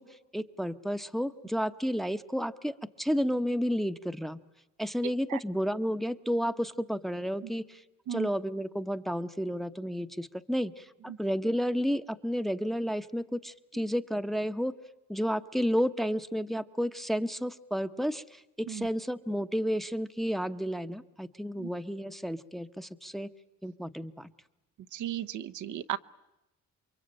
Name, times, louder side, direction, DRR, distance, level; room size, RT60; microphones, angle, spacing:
voice 1, 0.0-4.4 4.8-7.8 8.1-14.8 15.1-23.3 23.6-24.3, equal, ahead, 10 dB, 1.0 m, -31 dB
voice 2, 24.9-26.0, right 12 dB, 75° right, 10 dB, 0.9 m, -35 dB
28.0 x 23.5 x 8.9 m, 0.95 s
cardioid pair, 90°, 30 cm